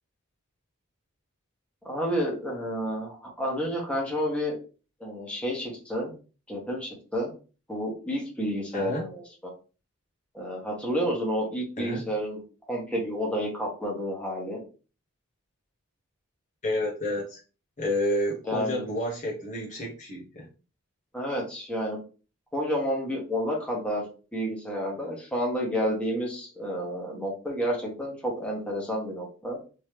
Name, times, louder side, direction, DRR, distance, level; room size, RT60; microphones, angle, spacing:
voice 1, 1.8-4.6 5.0-6.1 6.5-7.3 7.7-9.2 10.3-12.4 12.7-14.6 18.5-18.8 21.1-22.0 22.5-24.0 24.3-29.6, equal, 5° left, -3 dB, 1.2 m, -30 dB
voice 2, 8.7-9.0 11.8-12.1 16.6-17.4 17.8-20.5, left 1 dB, 35° left, -3 dB, 0.9 m, -30 dB
3.1 x 2.9 x 3.2 m, 0.34 s
head